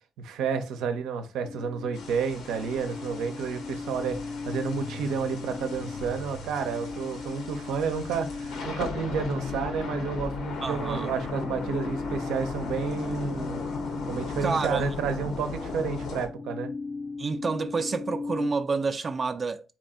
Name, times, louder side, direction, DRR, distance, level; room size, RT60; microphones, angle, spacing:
voice 1, 0.2-13.6 14.1-16.7, right 6 dB, 90° right, 0.7 m, -31 dB
sound 1, 1.4-18.5, left 3 dB, 35° left, 0.4 m, -38 dB
sound 2, 1.9-16.3, left 4 dB, 85° left, 1.1 m, -37 dB
sound 3, 2.2-11.4, left 2 dB, 65° left, 0.7 m, -48 dB
voice 2, 10.6-11.2 14.4-14.8 17.2-19.6, right 4 dB, 40° right, 0.4 m, -29 dB
4.3 x 2.5 x 4.2 m
cardioid pair, 90°, 0 cm